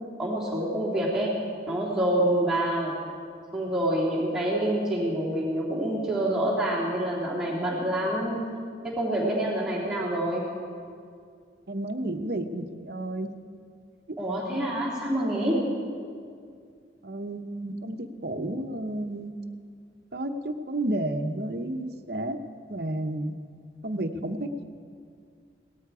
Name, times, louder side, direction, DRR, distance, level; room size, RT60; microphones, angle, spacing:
voice 1, 0.2-1.4 1.7-3.0 3.5-8.4 8.8-10.5 14.2-15.7, right 1 dB, 5° right, -8 dB, 3.1 m, -27 dB
voice 2, 11.7-13.3 14.1-14.2 17.0-19.3 20.1-22.4 22.7-23.3 23.8-24.6, right 1 dB, 60° right, 6 dB, 0.8 m, -31 dB
18.0 x 13.0 x 4.8 m, 2.2 s
head